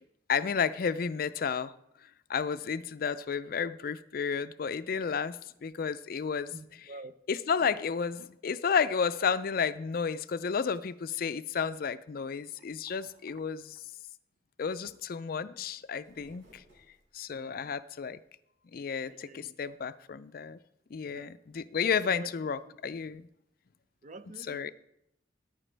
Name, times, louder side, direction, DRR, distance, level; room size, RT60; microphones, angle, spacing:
voice 1, 0.3-1.7 2.3-6.5 7.3-13.8 14.6-16.6 17.1-18.2 18.7-20.6 20.9-23.3 24.5-24.7, left 6 dB, 55° left, 0.4 m, -32 dB
voice 2, 6.5-7.1 12.9-13.1 16.3-16.4 17.3-17.7 19.1-19.5 21.0-21.3 22.0-22.3 22.7-22.8 24.0-24.7, right 2 dB, 40° right, 0.5 m, -48 dB
sound 1, 15.8-17.4, equal, 80° right, 5.2 m, -62 dB
14.0 x 9.8 x 3.3 m
head